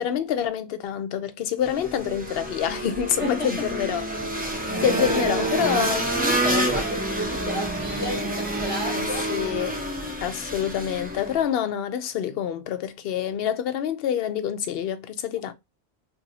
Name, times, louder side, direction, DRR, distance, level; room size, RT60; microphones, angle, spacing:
voice 1, 0.0-4.0 4.4-6.0 8.9-9.8 10.2-15.5, left 9 dB, 70° left, 0.7 m, -27 dB
sound 1, 1.6-11.4, right 1 dB, 10° right, 0.7 m, -28 dB
voice 2, 3.2-3.7 4.7-9.3, left 1 dB, 30° left, 1.2 m, -32 dB
2.7 x 2.7 x 3.9 m
omnidirectional pair, 1.1 m